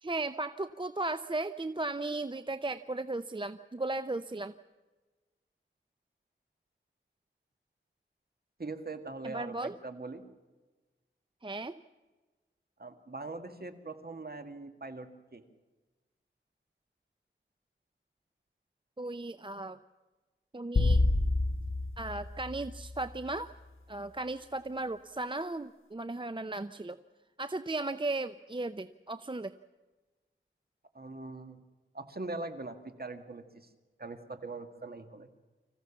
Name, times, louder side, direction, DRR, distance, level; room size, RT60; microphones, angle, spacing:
voice 1, 0.0-4.5 9.2-9.8 11.4-11.8 19.0-19.8 20.5-21.0 22.0-23.5 23.9-27.0 27.4-29.5, right 2 dB, 25° right, 12 dB, 0.6 m, -36 dB
voice 2, 8.6-10.2 12.8-15.4 30.9-31.6 31.9-33.7 34.0-35.3, right 3 dB, 45° right, 7 dB, 2.0 m, -42 dB
sound 1, 20.8-23.2, left 2 dB, 80° left, 1.8 m, -28 dB
25.5 x 15.5 x 7.3 m, 1.2 s
wide cardioid pair, 55°, 21 cm